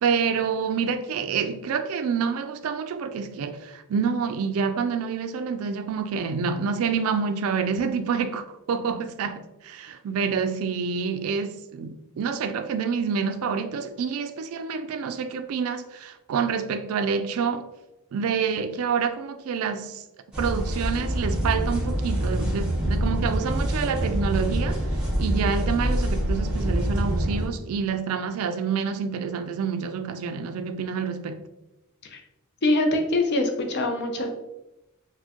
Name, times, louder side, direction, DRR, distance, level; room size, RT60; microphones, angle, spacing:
voice 1, 0.0-17.7 18.1-20.0 20.4-24.9 25.2-31.5, right 6 dB, 80° right, 0.3 m, -27 dB
sound 1, 20.3-27.5, equal, 5° right, 0.9 m, -25 dB
voice 2, 32.6-34.3, left 2 dB, 50° left, 0.5 m, -24 dB
4.2 x 2.1 x 2.9 m
head